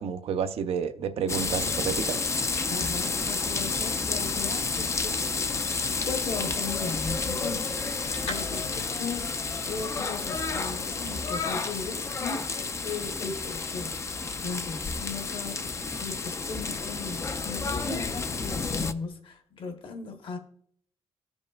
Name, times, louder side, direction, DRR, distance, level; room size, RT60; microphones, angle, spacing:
voice 1, 0.0-2.3, right 7 dB, 65° right, 0.6 m, -30 dB
sound 1, 1.3-18.9, left 4 dB, 25° left, 0.4 m, -30 dB
voice 2, 2.7-5.4 6.0-7.8 8.2-13.9 14.4-15.7 16.0-20.4, left 4 dB, 55° left, 1.2 m, -37 dB
sound 2, 2.8-11.2, left 4 dB, 80° left, 2.1 m, -44 dB
14.5 x 5.3 x 2.4 m
cardioid pair, 110°, 11 cm